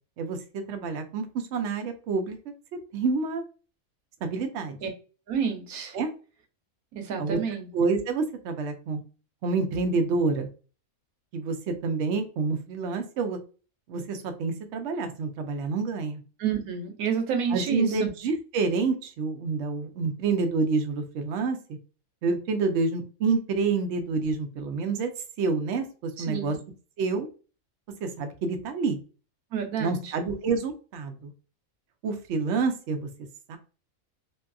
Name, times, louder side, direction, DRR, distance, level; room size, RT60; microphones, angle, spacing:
voice 1, 0.2-2.4 2.9-3.4 4.2-4.8 5.9-6.1 7.2-7.4 7.7-9.0 9.4-10.5 11.3-13.4 13.9-16.2 17.5-21.6 22.2-25.1 25.4-26.6 27.0-27.3 28.0-29.0 29.8-31.3 32.0-33.1 33.5-33.6, right 4 dB, 65° right, 0.8 m, -28 dB
voice 2, 5.3-5.9 6.9-7.7 16.4-18.1 26.2-26.6 29.5-30.1, right 7 dB, 90° right, 1.1 m, -29 dB
2.6 x 2.5 x 2.2 m
omnidirectional pair, 1.5 m